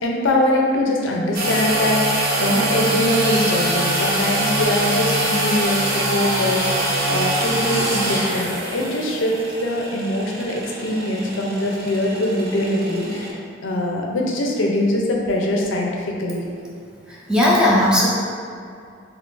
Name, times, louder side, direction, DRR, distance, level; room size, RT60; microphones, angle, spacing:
voice 1, 0.0-13.4 13.6-16.4, left 1 dB, 90° left, -1 dB, 0.5 m, -22 dB
sound 1, 1.3-13.3, right 1 dB, 55° right, 0.6 m, -24 dB
voice 2, 17.1-18.1, left 1 dB, 5° right, -6 dB, 0.5 m, -17 dB
2.7 x 2.4 x 3.7 m, 2.3 s
head